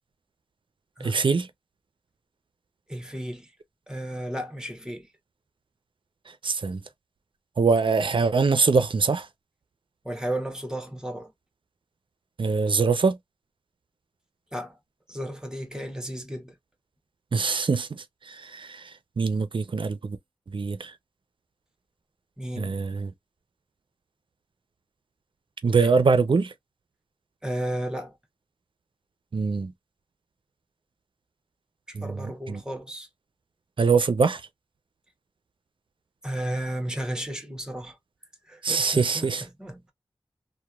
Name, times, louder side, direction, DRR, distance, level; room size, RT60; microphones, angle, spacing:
voice 1, 1.0-1.5 6.3-6.8 7.6-9.3 12.4-13.2 17.3-20.2 20.5-21.0 22.6-23.1 25.6-26.5 29.3-29.7 31.9-32.6 33.8-34.5 38.6-39.4, right 4 dB, 60° right, 0.5 m, -24 dB
voice 2, 2.9-3.5 3.9-5.1 10.0-11.3 14.5-14.8 15.1-16.5 22.4-22.8 27.4-28.1 31.9-33.1 36.2-38.0 38.5-39.3 39.6-39.9, right 1 dB, 5° right, 1.0 m, -33 dB
2.8 x 2.2 x 2.3 m
cardioid pair, 45°, 10 cm